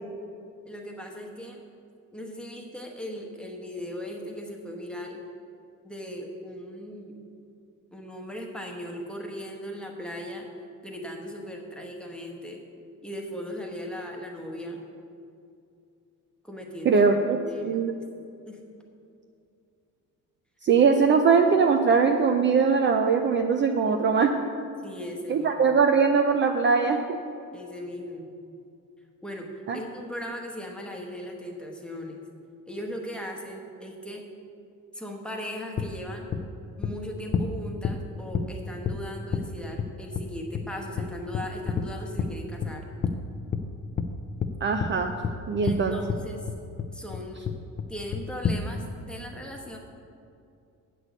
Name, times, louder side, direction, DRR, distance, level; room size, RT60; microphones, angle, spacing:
voice 1, 0.7-1.6 2.1-5.2 5.8-7.2 7.9-10.5 10.8-12.6 13.0-14.8 16.4-17.8 18.5-18.6 24.8-25.5 27.5-28.3 29.2-29.5 29.7-32.2 32.7-34.2 34.9-36.3 36.8-42.8 45.6-46.5 46.9-47.4 47.9-49.8, equal, 5° left, 0 dB, 1.0 m, -38 dB
voice 2, 16.8-17.4 17.6-17.9 20.6-24.3 25.3-27.2 29.7-29.8 44.6-45.1 45.5-46.0, right 5 dB, 35° right, 6 dB, 0.4 m, -21 dB
sound 1, 35.8-35.9 36.3-36.4 36.8-36.9 37.3-37.5 37.8-38.0 38.3-38.4 38.8-39.0 39.3-39.4 39.8-39.9 40.1-40.2 40.5-40.6 41.0-41.1 41.3-41.9 42.2-42.3 42.6-42.7 43.0-43.2 43.5-43.6 44.0-44.1 44.4-44.5 44.8-44.9 45.2-45.3 45.7-45.8 46.1-46.2 46.5-46.9 47.1-47.2 47.4-47.9 48.1-48.6, left 6 dB, 30° left, 0.4 m, -27 dB
8.1 x 6.1 x 8.0 m, 2.5 s
cardioid pair, 165°, 32 cm